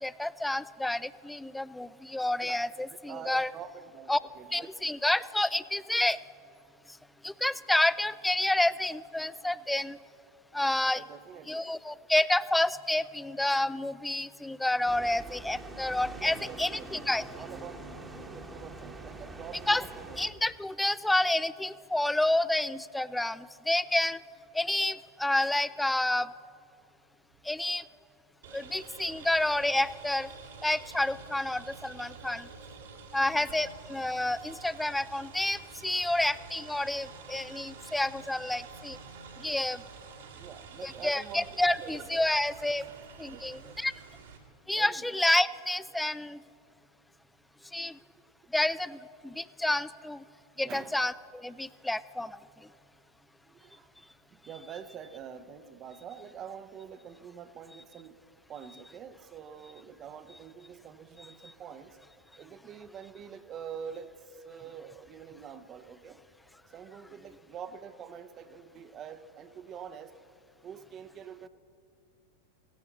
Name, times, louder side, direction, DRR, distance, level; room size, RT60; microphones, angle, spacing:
voice 1, 0.0-3.5 4.1-4.2 4.5-6.2 7.2-10.0 10.5-11.0 11.5-17.2 19.7-19.8 20.2-24.2 24.5-26.3 27.5-27.8 28.5-30.3 30.6-32.5 33.1-39.0 39.4-39.8 40.8-42.8 43.2-43.9 44.7-46.4 47.7-48.0 48.5-49.0 49.2-50.2 50.6-52.3, left 1 dB, 5° left, 18 dB, 0.3 m, -29 dB
voice 2, 2.9-4.9 10.9-11.7 16.2-17.1 17.3-20.2 33.3-33.5 40.4-42.2 43.3-43.8 44.7-45.2 47.9-48.1 50.6-51.0 53.4-53.9 54.3-58.2 58.5-62.0 62.4-66.2 66.7-70.1 70.6-71.5, right 7 dB, 30° right, 12 dB, 0.7 m, -46 dB
sound 1, 14.8-20.3, right 2 dB, 10° right, 1.2 m, -44 dB
sound 2, 28.4-44.4, right 5 dB, 60° right, 1.8 m, -48 dB
17.5 x 16.5 x 4.1 m, 2.4 s
figure-of-eight pair, 90°, 0 cm